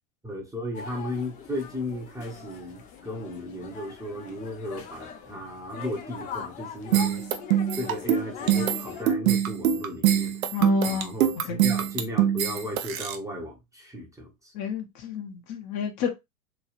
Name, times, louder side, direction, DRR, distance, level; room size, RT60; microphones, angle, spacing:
voice 1, 0.2-7.2 7.7-10.4 10.9-14.5, left 1 dB, 10° right, 0.7 m, -35 dB
sound 1, 0.7-9.1, left 7 dB, 20° left, 0.3 m, -41 dB
sound 2, 6.9-13.2, right 10 dB, 75° right, 0.7 m, -23 dB
voice 2, 10.5-11.1 11.4-11.6 14.5-16.1, left 7 dB, 40° left, 0.7 m, -30 dB
3.2 x 2.3 x 2.4 m
hypercardioid pair, 100°, 42 cm